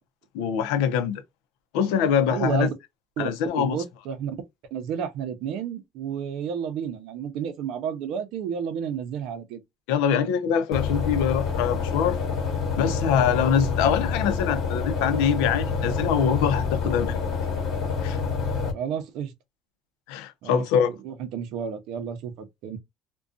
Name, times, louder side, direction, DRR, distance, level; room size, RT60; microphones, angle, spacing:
voice 1, 0.3-1.2 1.7-2.7 3.2-3.8 9.9-12.2 12.8-17.2 18.0-18.2 20.1-20.9, left 8 dB, 85° left, 0.5 m, -24 dB
voice 2, 2.3-2.7 3.2-3.3 3.6-4.4 4.7-9.6 18.7-19.3 20.4-20.7 21.0-22.8, right 7 dB, 60° right, 0.6 m, -31 dB
sound 1, 10.7-18.7, left 5 dB, 45° left, 1.0 m, -27 dB
2.5 x 2.2 x 2.4 m
cardioid pair, 155°, 0 cm